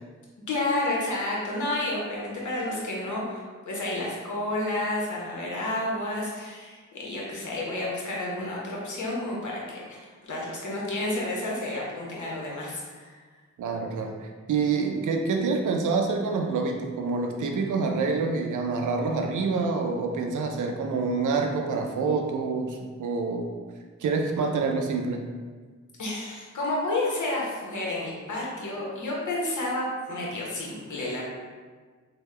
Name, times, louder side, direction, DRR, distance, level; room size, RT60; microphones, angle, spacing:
voice 1, 0.5-10.0 10.3-13.2 26.0-31.2, left 2 dB, 75° left, -4 dB, 0.9 m, -30 dB
voice 2, 13.6-23.5 24.0-25.2, right 4 dB, 85° right, 3 dB, 0.5 m, -27 dB
3.4 x 2.2 x 3.2 m, 1.5 s
cardioid pair, 55°, 30 cm